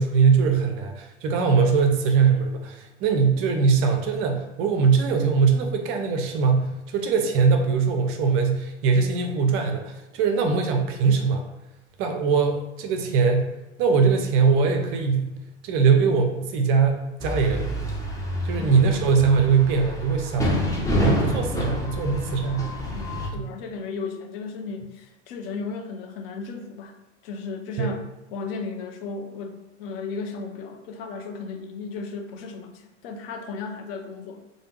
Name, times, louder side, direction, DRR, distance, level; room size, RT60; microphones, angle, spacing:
voice 1, 0.0-11.4 12.0-13.5 13.8-15.3 15.6-17.8 18.4-20.6 20.9-22.7 23.3-23.4 27.8-27.9, right 5 dB, 35° right, 4 dB, 0.5 m, -21 dB
sound 1, 17.2-23.3, left 1 dB, 10° left, 0.6 m, -28 dB
voice 2, 22.9-27.0 27.2-28.0 28.3-34.4, left 4 dB, 55° left, 5 dB, 0.5 m, -35 dB
3.3 x 2.1 x 3.0 m, 1.0 s
figure-of-eight pair, 85°, 36 cm